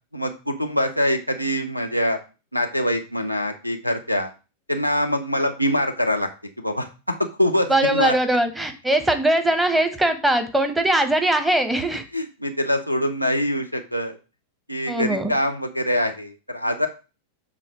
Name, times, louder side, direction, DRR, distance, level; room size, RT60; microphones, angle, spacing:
voice 1, 0.1-2.2 2.5-4.3 4.7-6.3 6.6-8.1 12.1-14.2 14.7-16.9, equal, 90° right, 8 dB, 0.8 m, -24 dB
voice 2, 7.7-12.0 14.9-15.3, right 1 dB, 5° right, 7 dB, 1.0 m, -21 dB
7.6 x 3.6 x 4.7 m, 0.32 s
figure-of-eight pair, 90°, 0 cm